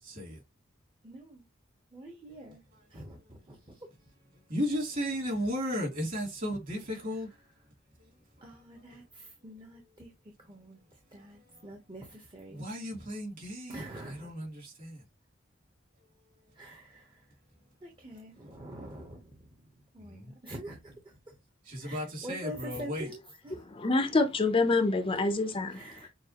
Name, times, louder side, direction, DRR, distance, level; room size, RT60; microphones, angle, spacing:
voice 1, 0.0-0.4 2.3-2.6 3.2-3.3 4.5-7.3 8.0-8.6 11.2-11.7 12.5-15.0 18.4-18.5 20.0-20.3 21.6-23.1, equal, 45° right, 2.8 m, -36 dB
voice 2, 1.0-1.4 1.9-2.6 2.9-3.9 8.4-10.1 10.5-10.8 11.1-12.7 13.7-14.3 16.5-17.3 17.8-19.5 19.9-21.3 21.8-23.6 25.7-26.1, right 1 dB, 25° right, 0.9 m, -45 dB
voice 3, 23.7-26.1, left 3 dB, 30° left, 0.5 m, -27 dB
6.8 x 2.4 x 2.9 m
head